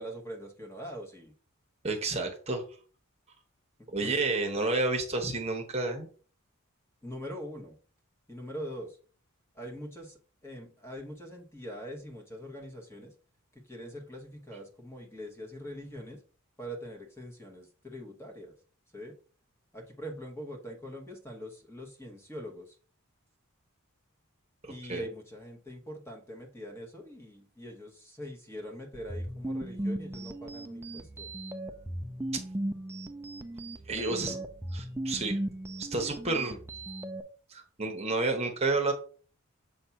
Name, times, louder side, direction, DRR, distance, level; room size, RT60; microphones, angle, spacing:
voice 1, 0.0-1.3 3.8-4.5 7.0-7.7 8.3-9.0 9.5-10.2 10.4-13.1 13.5-16.2 16.6-18.5 18.9-19.2 19.7-22.8 24.7-31.3 33.9-34.4, equal, 10° left, 1 dB, 1.0 m, -43 dB
voice 2, 1.8-2.6 3.9-6.1 24.6-25.0 33.9-34.3 34.7-35.4 35.8-36.6 37.5-38.9, right 3 dB, 30° right, 4 dB, 1.0 m, -30 dB
sound 1, 28.9-37.2, right 1 dB, 10° right, 0.4 m, -37 dB
7.1 x 2.7 x 5.7 m, 0.41 s
head